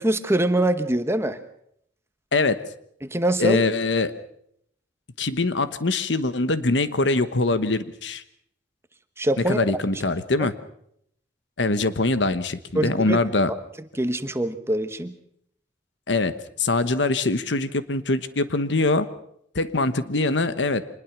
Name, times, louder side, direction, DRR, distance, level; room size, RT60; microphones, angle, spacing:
voice 1, 0.0-1.4 3.0-3.6 9.2-9.6 10.4-10.5 12.7-13.2 13.5-13.6 14.0-15.2, right 1 dB, 15° right, 10 dB, 1.1 m, -23 dB
voice 2, 2.3-2.6 3.4-4.1 5.2-8.2 9.5-10.5 11.6-13.5 16.1-16.3 16.6-19.1 19.5-20.8, left 3 dB, 80° left, 12 dB, 1.2 m, -23 dB
25.0 x 20.5 x 6.0 m, 0.71 s
head